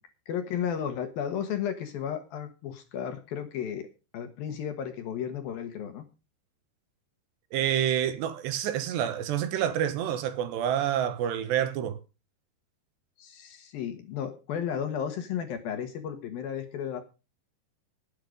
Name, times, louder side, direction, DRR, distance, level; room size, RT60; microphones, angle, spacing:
voice 1, 0.3-3.9 4.1-6.1 13.2-17.0, left 8 dB, 65° left, 2.7 m, -33 dB
voice 2, 7.5-12.0, right 10 dB, 75° right, 3.0 m, -28 dB
18.5 x 8.5 x 5.1 m
omnidirectional pair, 5.4 m